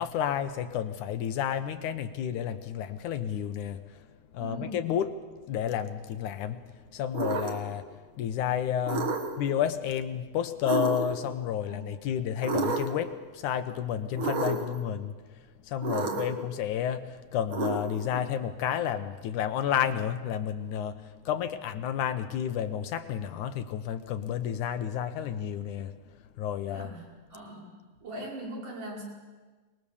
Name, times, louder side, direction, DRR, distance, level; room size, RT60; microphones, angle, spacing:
voice 1, 0.0-4.1 4.3-5.2 5.5-15.4 15.6-25.9 26.4-26.9, left 9 dB, 75° left, 10 dB, 2.4 m, -31 dB
voice 2, 4.4-4.9 11.6-11.8 15.9-16.3 21.3-21.4 26.7-27.0 27.3-29.0, right 1 dB, 75° right, -3 dB, 7.0 m, -41 dB
sound 1, 7.1-7.7 8.8-9.5 10.7-11.3 12.4-13.1 14.2-14.8 15.8-16.4 17.5-18.2, right 3 dB, 45° right, 2.3 m, -31 dB
24.0 x 20.5 x 7.1 m, 1.4 s
omnidirectional pair, 3.6 m